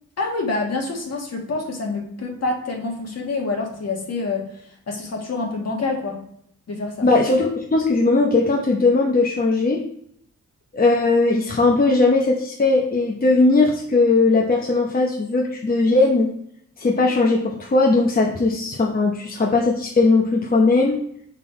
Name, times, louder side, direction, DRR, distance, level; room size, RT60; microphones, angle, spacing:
voice 1, 0.2-4.4 4.9-6.2 6.7-7.1, left 3 dB, 55° left, 0 dB, 1.6 m, -27 dB
voice 2, 7.0-9.8 10.7-16.3 16.8-21.0, left 3 dB, 30° left, -1 dB, 0.8 m, -18 dB
5.6 x 3.9 x 4.3 m, 0.70 s
cardioid pair, 100°, 30 cm